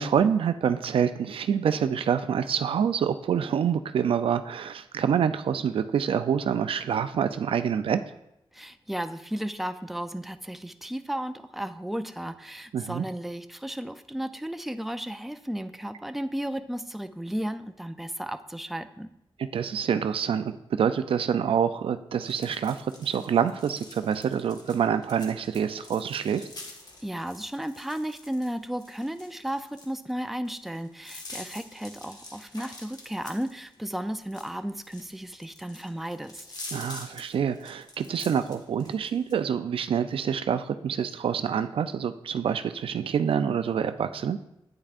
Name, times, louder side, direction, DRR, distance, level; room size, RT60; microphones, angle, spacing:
voice 1, 0.0-8.0 12.7-13.0 19.4-26.5 36.7-44.4, right 8 dB, 75° right, 11 dB, 0.4 m, -26 dB
voice 2, 8.5-19.1 27.0-36.4, right 1 dB, ahead, 9 dB, 0.4 m, -34 dB
sound 1, 22.2-39.3, left 2 dB, 45° left, 1.5 m, -46 dB
8.9 x 8.6 x 2.5 m, 0.82 s
cardioid pair, 80°, 9 cm